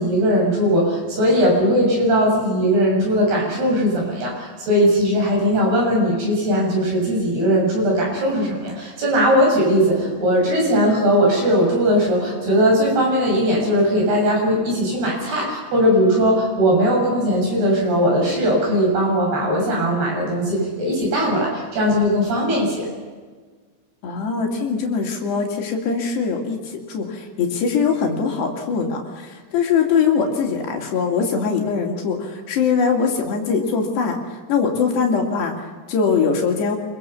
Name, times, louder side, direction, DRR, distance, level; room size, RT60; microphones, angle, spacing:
voice 1, 0.0-22.9, equal, 60° right, -2 dB, 8.3 m, -19 dB
voice 2, 24.0-36.8, left 5 dB, 70° left, 1 dB, 4.7 m, -22 dB
27.5 x 23.5 x 7.0 m, 1.4 s
omnidirectional pair, 5.0 m